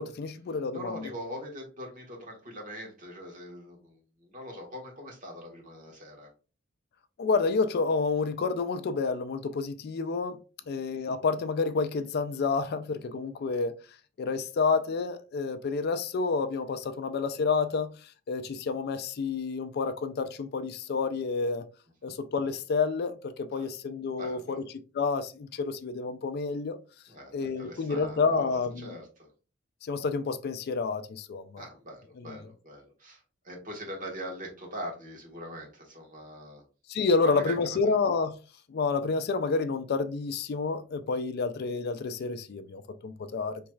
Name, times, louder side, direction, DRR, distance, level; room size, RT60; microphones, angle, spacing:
voice 1, 0.0-0.9 7.2-10.4 10.7-13.7 14.2-17.9 18.3-21.6 22.0-24.6 25.0-26.8 27.3-29.0 29.8-31.6 32.3-32.4 36.9-38.4 38.7-43.6, left 4 dB, 55° left, 0.4 m, -29 dB
voice 2, 0.7-6.3 10.7-10.8 22.0-22.1 23.5-23.7 24.2-24.6 27.1-29.3 31.6-36.6 37.2-37.9, equal, 40° right, 1.4 m, -42 dB
4.5 x 3.1 x 2.3 m
head